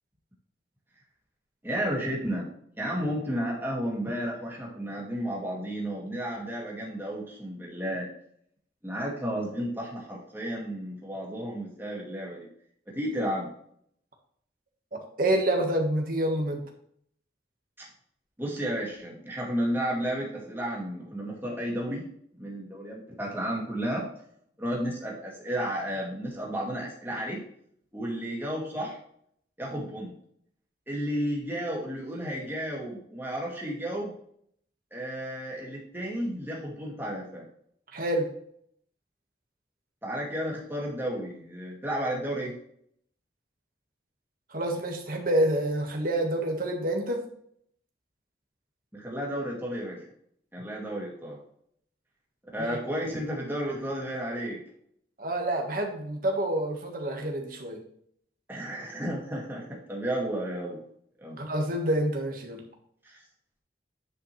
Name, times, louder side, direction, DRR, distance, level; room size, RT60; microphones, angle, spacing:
voice 1, 1.6-2.5 2.8-8.1 8.8-12.5 12.9-13.5 18.4-22.0 22.4-24.1 24.6-27.4 27.9-29.0 29.6-30.1 30.9-34.1 34.9-37.4 40.0-42.5 48.9-50.0 50.5-51.4 52.5-54.6 58.5-60.8 61.2-61.4 63.0-63.2, equal, 10° right, -3 dB, 2.1 m, -32 dB
voice 2, 15.2-16.6 37.9-38.3 44.5-47.2 52.6-52.8 55.2-57.8 61.4-62.6, right 1 dB, 50° right, 2 dB, 1.5 m, -27 dB
9.7 x 5.3 x 3.2 m, 0.66 s
head